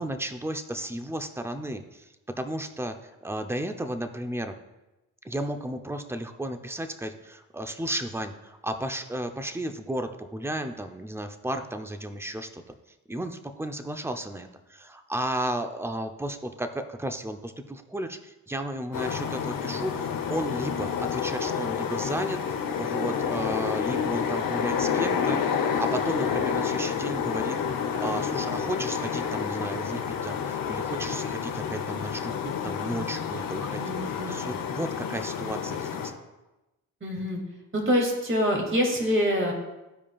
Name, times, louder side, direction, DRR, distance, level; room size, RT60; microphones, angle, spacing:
voice 1, 0.0-4.6 5.2-12.8 13.1-27.6 28.0-36.1, right 1 dB, 5° right, 7 dB, 0.7 m, -34 dB
sound 1, 18.9-36.1, left 7 dB, 65° left, 1.0 m, -29 dB
voice 2, 33.8-34.5 37.0-37.4 37.7-39.5, equal, 35° right, 0 dB, 2.5 m, -25 dB
14.0 x 4.9 x 2.4 m, 1.0 s
supercardioid pair, 60°, 36 cm